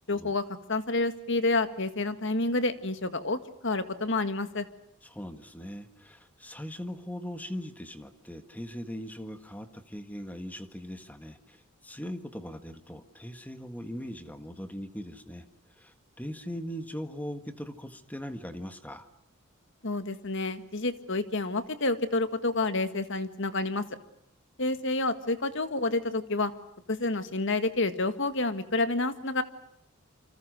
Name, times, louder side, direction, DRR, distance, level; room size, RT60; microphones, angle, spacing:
voice 1, 0.1-0.4 0.7-4.7 19.8-23.8 24.6-26.5 26.9-29.4, left 2 dB, 60° left, 10 dB, 1.9 m, -29 dB
voice 2, 5.0-19.1, equal, 5° left, 8 dB, 1.7 m, -40 dB
28.5 x 26.0 x 6.5 m, 0.76 s
head